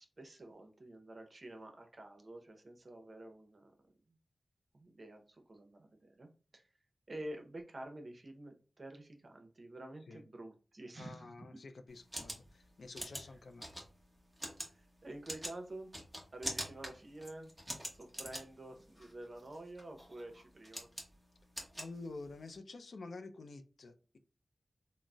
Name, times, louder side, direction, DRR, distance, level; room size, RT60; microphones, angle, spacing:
voice 1, 0.0-3.7 4.1-4.2 4.7-6.7 7.1-11.6 13.2-13.4 14.6-15.9 16.3-17.5 17.9-20.9, right 1 dB, 45° right, 0.6 m, -49 dB
voice 2, 11.0-13.7 21.8-24.2, left 3 dB, 75° left, 0.3 m, -49 dB
sound 1, 11.9-22.5, equal, 5° right, 0.9 m, -46 dB
3.7 x 2.0 x 2.3 m
wide cardioid pair, 75°, 0 cm